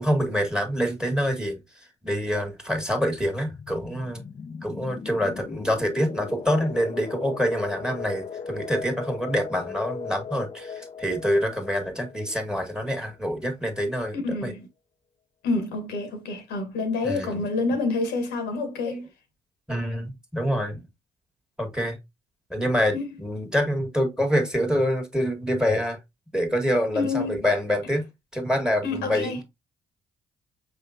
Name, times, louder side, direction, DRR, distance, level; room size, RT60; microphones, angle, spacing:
voice 1, 0.0-1.6 2.0-4.2 4.6-14.2 14.4-14.5 17.0-17.4 18.9-19.0 19.7-20.8 21.6-22.0 22.5-26.0 26.3-28.1 28.3-29.4, equal, 5° right, 1.7 m, -26 dB
sound 1, 3.1-13.6, left 6 dB, 30° left, 0.6 m, -38 dB
voice 2, 14.2-14.7 15.4-19.0 22.9-23.2 26.9-27.4 28.8-29.4, left 3 dB, 70° left, 1.2 m, -28 dB
5.3 x 3.6 x 2.7 m
hypercardioid pair, 45°, 18 cm